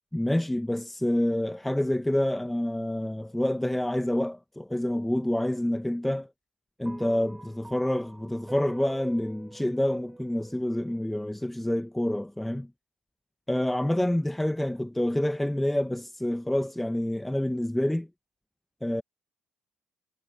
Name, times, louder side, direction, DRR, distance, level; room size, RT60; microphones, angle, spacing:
voice 1, 0.1-6.3 6.8-12.7 13.5-18.1 18.8-19.0, left 1 dB, 5° left, 0.8 m, -27 dB
sound 1, 6.9-11.3, right 2 dB, 15° right, 6.1 m, -47 dB
cardioid pair, 110°, 3 cm